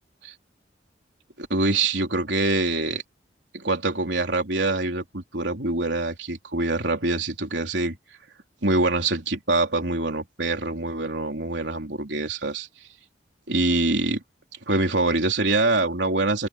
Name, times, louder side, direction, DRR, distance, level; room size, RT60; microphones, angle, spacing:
voice 1, 1.4-3.0 3.5-8.0 8.6-12.7 13.5-14.2 14.7-16.5, right 2 dB, 80° right, 3.8 m, -24 dB
open air
head